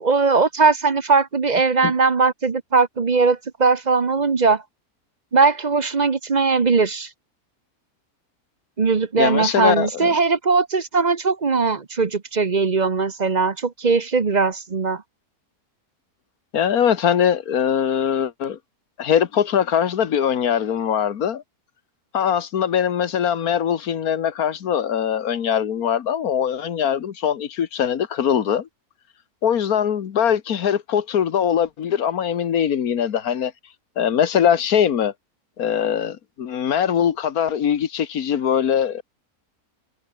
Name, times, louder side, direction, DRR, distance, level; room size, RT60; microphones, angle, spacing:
voice 1, 0.0-4.6 5.3-7.1 8.8-15.0, right 4 dB, 35° right, 0.9 m, -19 dB
voice 2, 9.2-10.1 16.5-18.6 19.0-21.4 22.1-28.7 29.4-33.5 34.0-35.1 35.6-39.0, left 8 dB, 75° left, 1.7 m, -21 dB
omnidirectional pair, 1.6 m